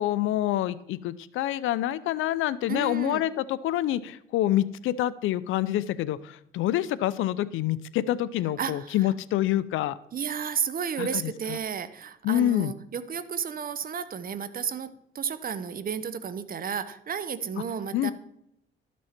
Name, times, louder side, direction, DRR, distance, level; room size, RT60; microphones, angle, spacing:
voice 1, 0.0-10.0 11.0-11.6 12.2-12.7 17.9-18.1, left 13 dB, 85° left, 17 dB, 0.6 m, -27 dB
voice 2, 2.7-3.2 8.6-9.0 10.1-18.1, right 7 dB, 45° right, 13 dB, 0.9 m, -32 dB
12.0 x 6.2 x 4.3 m, 0.80 s
cardioid pair, 90°, 20 cm